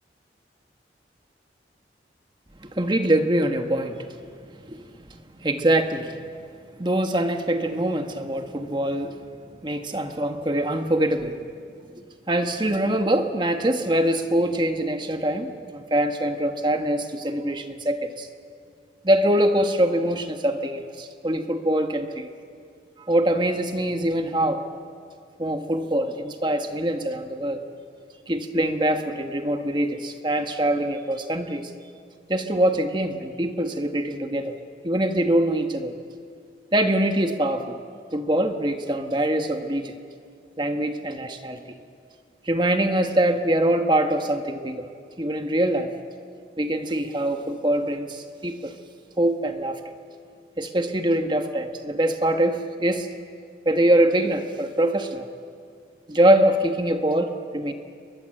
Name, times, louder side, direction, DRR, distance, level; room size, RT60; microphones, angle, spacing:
voice 1, 2.6-4.1 4.7-4.8 5.4-6.2 6.8-9.2 9.6-11.4 12.3-18.3 19.0-22.3 23.0-24.6 25.4-27.6 28.3-31.7 32.3-34.6 34.8-35.9 36.7-37.7 38.1-39.9 40.6-41.6 42.5-44.9 45.2-45.9 46.6-48.7 49.2-49.9 50.6-53.1 53.6-55.3 56.1-57.7, right 1 dB, 25° right, 6 dB, 1.3 m, -23 dB
30.0 x 22.0 x 7.7 m, 2.2 s
head